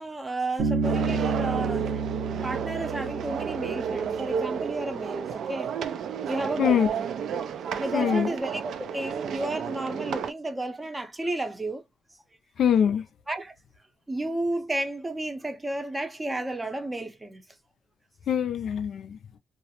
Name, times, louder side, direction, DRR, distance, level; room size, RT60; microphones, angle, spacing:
voice 1, 0.0-2.0 2.4-5.7 6.3-7.0 7.6-11.8 13.3-13.5 14.1-17.4, right 1 dB, 15° right, 0.5 m, -32 dB
Bass guitar, 0.6-4.3, right 5 dB, 85° right, 0.7 m, -30 dB
sound 1, 0.8-10.3, right 7 dB, 70° right, 0.3 m, -32 dB
voice 2, 7.9-8.3 12.6-13.0 18.3-19.2, left 8 dB, 65° left, 0.4 m, -23 dB
2.3 x 2.0 x 2.8 m
cardioid pair, 90°, 0 cm